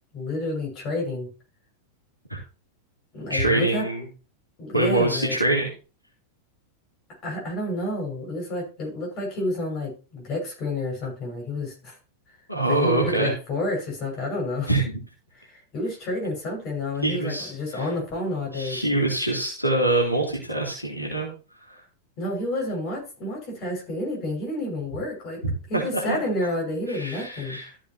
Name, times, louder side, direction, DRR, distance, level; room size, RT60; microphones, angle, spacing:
voice 1, 0.1-1.3 3.1-3.9 4.6-5.4 7.2-12.0 12.7-14.7 15.3-18.8 22.2-25.4 25.7-27.6, left 2 dB, 35° left, 0 dB, 6.0 m, -30 dB
voice 2, 3.3-4.0 4.7-5.7 12.5-13.3 14.7-14.8 17.0-17.8 18.5-21.3 21.7-21.8 25.4-26.2 26.9-27.7, right 2 dB, 90° left, -2 dB, 2.9 m, -24 dB
14.0 x 7.4 x 2.9 m, 0.33 s
figure-of-eight pair, 90°, 0 cm